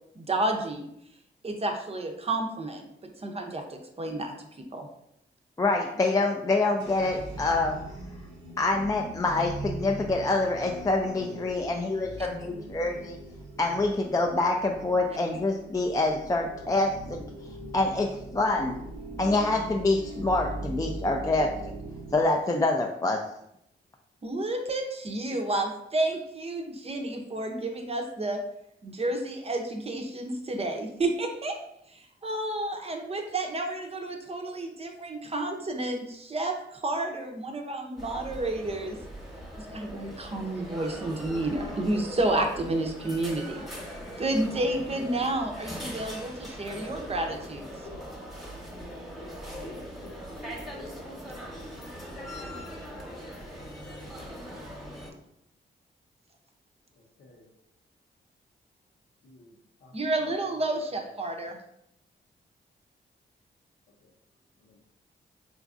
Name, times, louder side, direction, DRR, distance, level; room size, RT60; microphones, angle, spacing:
voice 1, 0.2-0.9 1.4-2.9 3.2-4.3 4.7-4.9 24.2-28.4 28.8-31.6 32.2-39.0 39.7-43.6 44.2-47.7 59.9-61.6, right 2 dB, 30° right, 3 dB, 0.6 m, -30 dB
voice 2, 5.6-7.8 8.6-13.2 13.6-17.2 17.7-18.7 19.2-21.5 22.1-23.2, left 2 dB, 20° left, 2 dB, 0.3 m, -26 dB
sound 1, 6.8-22.3, right 2 dB, 75° right, 0.6 m, -40 dB
sound 2, 38.0-55.1, equal, ahead, 1.0 m, -41 dB
voice 3, 57.2-57.5 59.2-60.0 61.2-61.3 64.0-64.1 64.6-64.8, left 1 dB, 70° left, 1 dB, 0.7 m, -57 dB
3.8 x 2.4 x 2.5 m, 0.77 s
cardioid pair, 60°, 19 cm